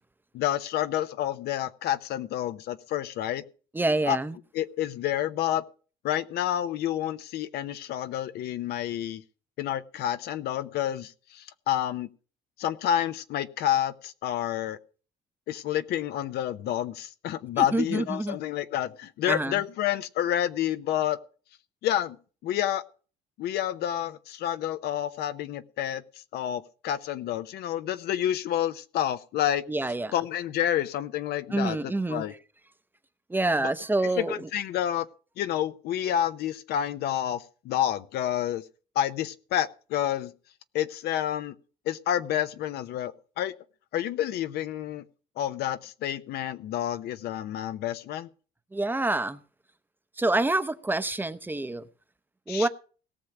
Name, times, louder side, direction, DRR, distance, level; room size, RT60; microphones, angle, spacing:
voice 1, 0.3-3.4 4.0-4.2 4.5-5.6 6.0-9.2 9.6-12.1 12.6-14.8 15.5-21.2 21.8-22.2 22.4-22.8 23.4-26.0 26.3-29.6 30.1-31.8 32.1-32.3 33.6-33.7 34.2-35.1 35.4-38.6 39.0-40.3 40.7-41.5 41.9-43.5 43.9-45.0 45.4-48.3 52.5-52.7, left 11 dB, 75° left, 0.7 m, -29 dB
voice 2, 3.7-4.4 17.6-18.4 19.3-19.6 29.7-30.1 31.5-32.2 33.3-34.5 48.7-49.4 50.2-51.8 52.5-52.7, right 2 dB, 10° right, 0.7 m, -27 dB
18.0 x 6.5 x 5.9 m
cardioid pair, 110°, 17 cm